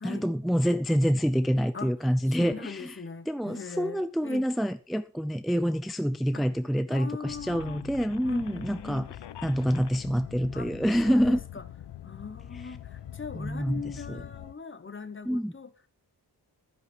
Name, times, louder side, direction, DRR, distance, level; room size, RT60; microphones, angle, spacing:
voice 1, 0.0-3.0 3.3-9.1 9.4-11.4 13.3-13.8 14.1-14.2 15.3-15.5, equal, ahead, 0.5 m, -27 dB
voice 2, 1.7-4.4 6.3-6.5 6.9-7.8 8.2-9.1 10.5-10.7 11.0-11.7 12.0-15.9, left 5 dB, 30° left, 1.2 m, -41 dB
sound 1, 7.2-14.5, left 11 dB, 90° left, 0.8 m, -43 dB
11.5 x 10.5 x 4.5 m
wide cardioid pair, 125°, 41 cm